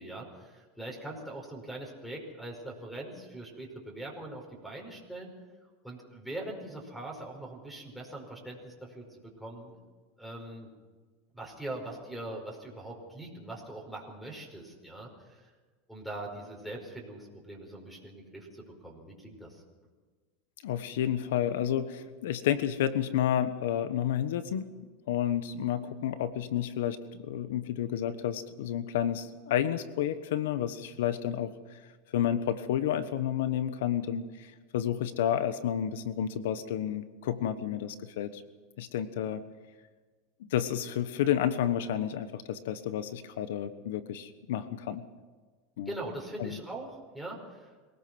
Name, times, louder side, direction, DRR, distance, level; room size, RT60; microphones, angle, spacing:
voice 1, 0.0-5.3 5.8-9.8 10.2-10.7 11.3-15.5 15.9-19.6 45.9-47.8, right 1 dB, ahead, 1 dB, 5.0 m, -42 dB
voice 2, 20.6-24.7 25.1-31.8 32.1-38.4 38.8-39.4 40.5-45.0 45.8-45.9 46.4-46.6, left 10 dB, 80° left, 12 dB, 1.2 m, -30 dB
23.5 x 17.5 x 6.2 m, 1.4 s
supercardioid pair, 130°, 0 cm